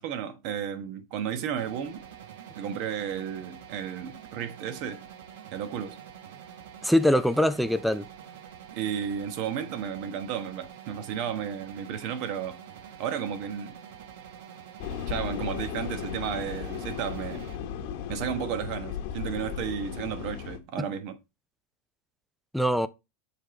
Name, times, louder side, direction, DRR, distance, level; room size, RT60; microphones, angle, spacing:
voice 1, 0.0-2.0 2.6-5.0 5.5-6.0 8.7-12.6 13.0-13.8 15.1-17.5 18.1-21.2, right 8 dB, 50° right, 1.1 m, -33 dB
sound 1, 1.6-17.6, right 9 dB, 75° right, 1.0 m, -46 dB
voice 2, 6.8-8.1 20.8-20.9 22.5-22.9, equal, ahead, 0.4 m, -23 dB
sound 2, 14.8-20.6, left 8 dB, 60° left, 1.0 m, -35 dB
7.2 x 3.6 x 3.9 m
supercardioid pair, 145°, 0 cm